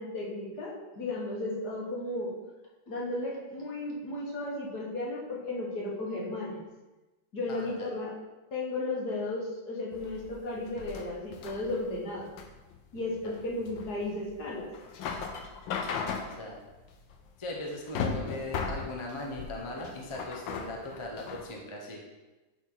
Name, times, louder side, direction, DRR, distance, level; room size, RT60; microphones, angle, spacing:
voice 1, 0.0-2.3 2.9-6.6 7.3-8.1 8.5-12.3 12.9-14.7, left 2 dB, 55° left, -3 dB, 2.0 m, -34 dB
voice 2, 7.5-7.9 13.2-13.3 16.3-16.6 17.4-22.0, left 1 dB, 25° left, -1 dB, 0.7 m, -39 dB
sound 1, 9.9-21.5, left 5 dB, 75° left, 1.4 m, -38 dB
10.5 x 4.6 x 3.9 m, 1.1 s
omnidirectional pair, 2.1 m